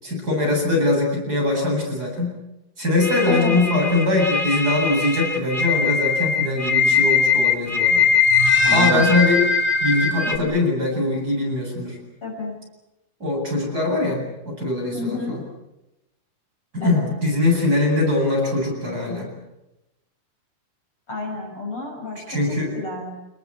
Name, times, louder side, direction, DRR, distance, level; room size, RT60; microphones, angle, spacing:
voice 1, 0.0-2.4 2.8-8.1 8.7-9.4 9.8-12.0 13.2-15.4 16.7-19.3 22.3-22.7, left 2 dB, 20° right, -1 dB, 8.5 m, -22 dB
sound 1, 3.0-10.4, left 5 dB, 15° left, 2.3 m, -20 dB
voice 2, 8.6-9.2 10.2-10.5 12.2-12.5 14.9-15.4 16.8-17.1 21.1-22.4 22.7-23.1, left 3 dB, 35° left, 0 dB, 6.8 m, -30 dB
29.0 x 21.0 x 8.5 m, 0.93 s
omnidirectional pair, 4.4 m